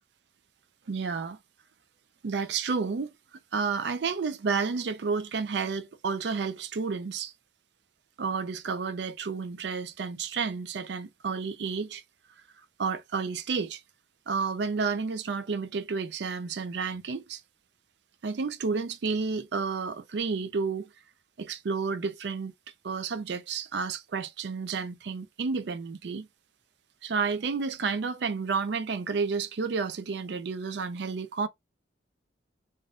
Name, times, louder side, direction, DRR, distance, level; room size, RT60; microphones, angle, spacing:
voice 1, 0.9-1.4 2.2-3.1 3.5-7.3 8.2-12.0 12.8-13.8 14.3-17.4 18.2-20.9 21.4-22.5 22.8-26.3 27.0-31.5, right 5 dB, 65° right, 0.4 m, -31 dB
3.4 x 2.5 x 2.4 m
head